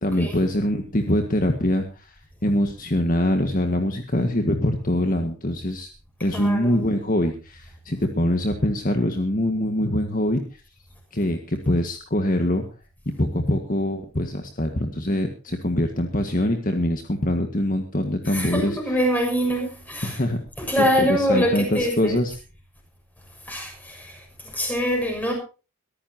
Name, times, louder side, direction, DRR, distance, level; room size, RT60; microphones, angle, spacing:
voice 1, 0.0-2.2 2.4-5.9 6.2-10.6 11.1-12.6 13.1-19.0 20.0-20.4 20.8-22.4, left 1 dB, 40° left, 5 dB, 1.8 m, -24 dB
voice 2, 6.3-6.8 18.2-20.2 20.6-22.1 23.5-24.2 24.5-25.3, equal, 5° left, 2 dB, 6.7 m, -24 dB
23.0 x 14.5 x 2.9 m, 0.34 s
head